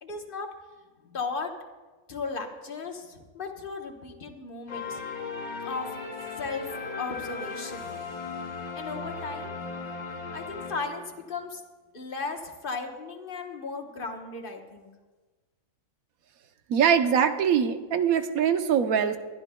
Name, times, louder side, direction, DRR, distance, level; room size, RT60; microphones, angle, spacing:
voice 1, 0.0-0.5 1.0-1.5 2.1-5.0 5.6-5.9 6.4-6.7 7.0-7.9 8.7-9.6 10.3-11.6 11.9-14.9, left 4 dB, 40° left, 3 dB, 1.2 m, -36 dB
sound 1, 4.7-11.3, left 4 dB, 85° left, 1.7 m, -37 dB
voice 2, 16.7-19.2, right 8 dB, 85° right, 9 dB, 1.2 m, -23 dB
22.0 x 12.0 x 2.2 m, 1.3 s
omnidirectional pair, 1.5 m